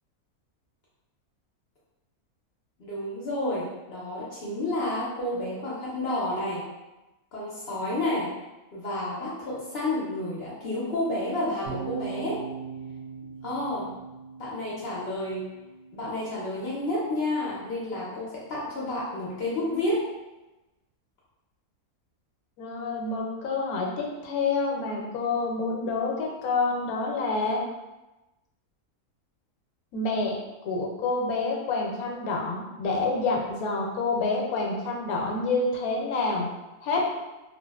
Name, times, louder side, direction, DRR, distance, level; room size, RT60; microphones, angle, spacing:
voice 1, 2.8-6.6 7.3-8.3 8.7-12.4 13.4-13.9 14.4-15.5 15.9-20.1, left 1 dB, 60° left, -7 dB, 0.6 m, -30 dB
sound 1, 11.7-17.9, right 7 dB, 70° right, 0.9 m, -41 dB
voice 2, 22.6-27.6 29.9-30.4 30.6-36.5 36.8-37.0, left 3 dB, 80° left, -1 dB, 1.0 m, -28 dB
2.7 x 2.3 x 2.2 m, 1.0 s
omnidirectional pair, 1.5 m